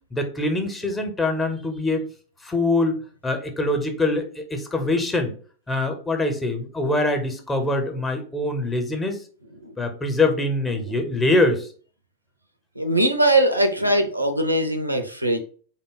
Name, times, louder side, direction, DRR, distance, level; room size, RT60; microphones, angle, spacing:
voice 1, 0.1-2.1 2.4-5.3 5.7-9.2 9.8-11.7, left 2 dB, 15° left, 5 dB, 0.7 m, -24 dB
voice 2, 12.8-15.4, right 1 dB, 85° right, 7 dB, 0.5 m, -21 dB
3.4 x 2.1 x 3.9 m, 0.42 s
figure-of-eight pair, 90°, 0 cm